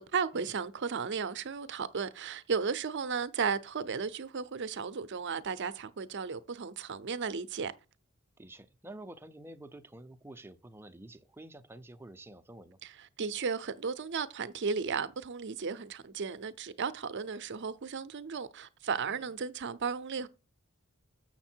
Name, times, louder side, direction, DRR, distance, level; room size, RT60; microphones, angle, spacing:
voice 1, 0.1-7.7 12.8-20.3, right 5 dB, 55° right, 0.6 m, -34 dB
voice 2, 8.4-12.8 19.1-19.3, right 1 dB, 10° right, 0.5 m, -49 dB
7.1 x 6.6 x 4.4 m
head